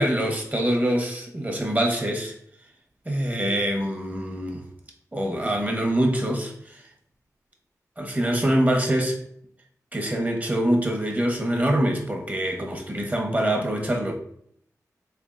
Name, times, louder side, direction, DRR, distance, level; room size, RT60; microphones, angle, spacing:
voice 1, 0.0-2.3 3.0-4.6 5.1-6.9 8.0-9.2 9.9-14.1, right 1 dB, 25° right, 2 dB, 0.9 m, -24 dB
3.6 x 3.4 x 2.5 m, 0.67 s
cardioid pair, 55°, 6 cm